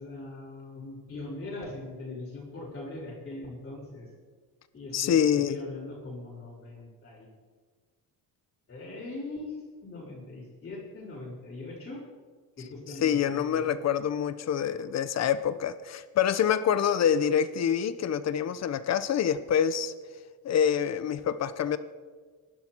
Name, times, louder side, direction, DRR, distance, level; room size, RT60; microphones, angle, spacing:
voice 1, 0.0-4.1 4.7-5.2 5.5-7.3 8.7-9.5 9.8-12.0 12.6-13.6, left 2 dB, 30° left, -10 dB, 5.8 m, -40 dB
voice 2, 4.9-5.6 13.0-19.9 20.4-21.8, left 8 dB, 45° left, 13 dB, 1.0 m, -26 dB
26.5 x 12.0 x 4.6 m, 1.5 s
cardioid pair, 135°, 36 cm